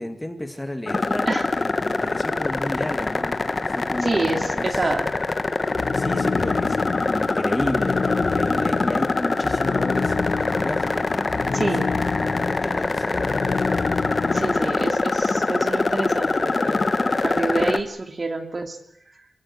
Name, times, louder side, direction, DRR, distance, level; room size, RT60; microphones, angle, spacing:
voice 1, 0.0-1.3 1.6-3.3 3.7-4.8 5.9-6.8 7.1-11.7 12.1-13.4, left 1 dB, 10° left, 6 dB, 2.2 m, -32 dB
sound 1, 0.9-17.8, left 3 dB, 30° left, 1.4 m, -24 dB
voice 2, 4.0-5.1 11.5-11.9 14.3-16.9 17.1-18.8, right 3 dB, 30° right, 6 dB, 2.6 m, -27 dB
sound 2, 5.7-14.9, left 5 dB, 50° left, 1.2 m, -29 dB
27.5 x 17.0 x 9.8 m, 0.73 s
wide cardioid pair, 165°, 0 cm